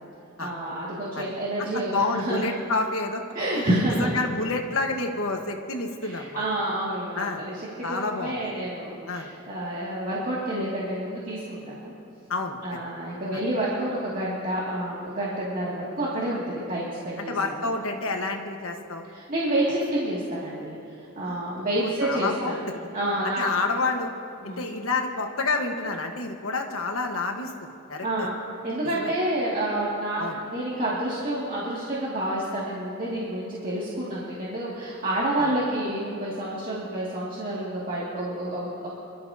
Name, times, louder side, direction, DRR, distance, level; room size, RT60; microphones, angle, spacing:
voice 1, 0.4-2.5 3.3-4.1 6.0-7.4 7.9-11.9 12.6-16.4 16.7-17.3 17.6-17.7 19.1-20.8 21.2-22.6 22.9-23.4 24.4-24.7 28.0-28.3 28.6-38.9, right 1 dB, 40° right, -7 dB, 2.4 m, -29 dB
voice 2, 1.7-3.2 3.5-3.7 4.0-6.4 7.1-7.4 7.8-8.5 9.1-9.3 12.3-12.8 13.3-13.4 17.2-19.1 21.2-22.7 23.2-24.1 24.4-28.3 28.9-29.1 30.2-30.4 35.4-35.5, left 3 dB, 80° left, 4 dB, 1.4 m, -29 dB
27.5 x 12.5 x 2.8 m, 2.9 s
head